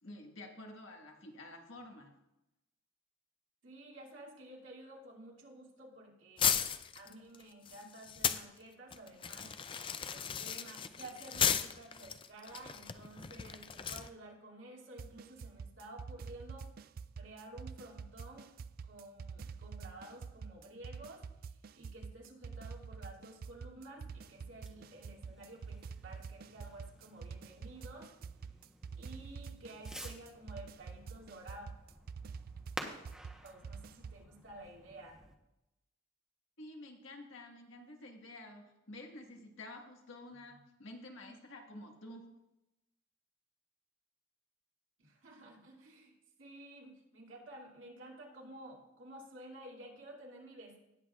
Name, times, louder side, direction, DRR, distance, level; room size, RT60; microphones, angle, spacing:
voice 1, 0.0-2.1 36.6-42.3, left 1 dB, 75° left, 2 dB, 1.6 m, -50 dB
voice 2, 3.6-9.5 10.1-16.7 17.2-18.5 18.8-21.2 21.7-28.1 29.0-31.7 33.4-35.2 40.5-40.6 45.0-46.1 46.4-50.9, right 1 dB, 75° right, -2 dB, 2.5 m, -52 dB
sound 1, 6.4-8.4 8.9-14.1, left 8 dB, 25° left, 0.4 m, -35 dB
sound 2, 15.0-34.2, right 5 dB, 50° right, 0.3 m, -47 dB
Fireworks, 24.0-35.3, equal, 5° right, 0.9 m, -52 dB
18.5 x 7.8 x 2.4 m, 0.92 s
head